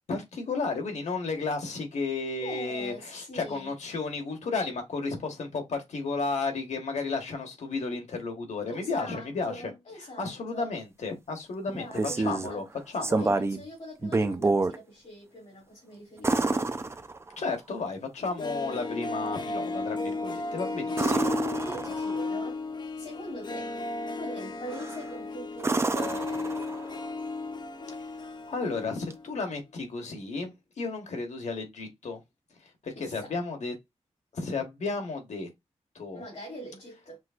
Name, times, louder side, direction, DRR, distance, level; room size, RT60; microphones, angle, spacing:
voice 1, 0.1-9.7 10.2-12.6 12.9-13.3 17.4-21.3 28.2-32.2 32.6-33.7 34.3-35.5 35.9-36.2, left 4 dB, 90° left, 1.2 m, -33 dB
voice 2, 2.4-3.7 8.7-10.7 11.7-12.6 13.0-16.7 21.6-22.6 22.9-23.7 24.2-26.6 32.9-33.4 36.1-37.2, equal, 65° left, 2.6 m, -43 dB
sound 1, 11.7-12.5 13.0-13.6 14.0-14.8 16.2-17.5 20.9-22.2 24.7-25.1 25.6-27.0 29.1-29.2, right 3 dB, 20° right, 0.4 m, -28 dB
Harp, 18.2-29.2 29.5-29.6, left 3 dB, 40° left, 0.4 m, -34 dB
6.1 x 2.4 x 2.4 m
wide cardioid pair, 165°, 12 cm